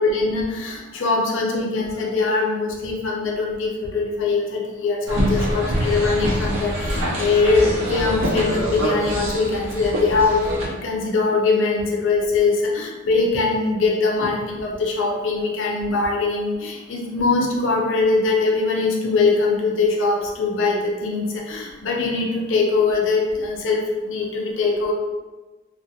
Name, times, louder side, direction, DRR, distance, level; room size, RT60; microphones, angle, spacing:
voice 1, 0.0-24.9, left 3 dB, 65° left, -1 dB, 0.5 m, -22 dB
sound 1, 5.1-10.7, equal, 70° right, 0.6 m, -24 dB
2.2 x 2.1 x 2.7 m, 1.2 s
head